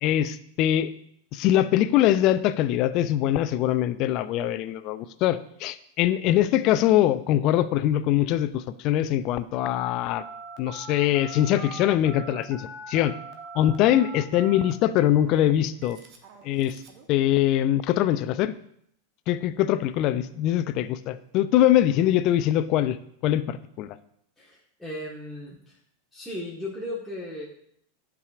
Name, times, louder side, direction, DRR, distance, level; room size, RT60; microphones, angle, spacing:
voice 1, 0.0-0.9 1.3-10.2 10.6-13.2 13.5-16.0 16.4-16.8 17.1-18.5 19.3-23.0 23.2-23.9, left 12 dB, 45° left, 14 dB, 0.4 m, -23 dB
Telephone, 10.2-17.0, right 4 dB, 45° right, 1.0 m, -42 dB
voice 2, 24.4-25.8 26.1-27.5, left 1 dB, 5° left, -7 dB, 1.4 m, -36 dB
11.0 x 4.8 x 2.5 m, 0.69 s
figure-of-eight pair, 90°, 0 cm